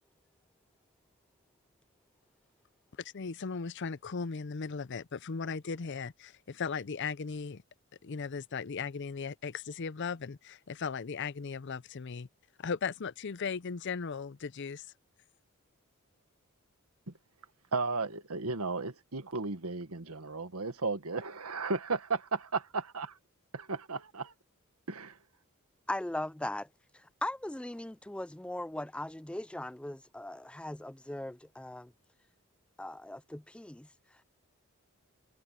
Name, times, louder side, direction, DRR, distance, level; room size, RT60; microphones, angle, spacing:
voice 1, 3.0-7.6 8.0-12.3 12.6-14.9, left 5 dB, 55° left, 0.5 m, -37 dB
voice 2, 17.7-23.2 23.5-24.3 24.9-25.2, right 4 dB, 85° right, 1.6 m, -34 dB
voice 3, 25.9-26.7 26.9-31.9 32.8-33.9, left 1 dB, 5° left, 0.4 m, -39 dB
head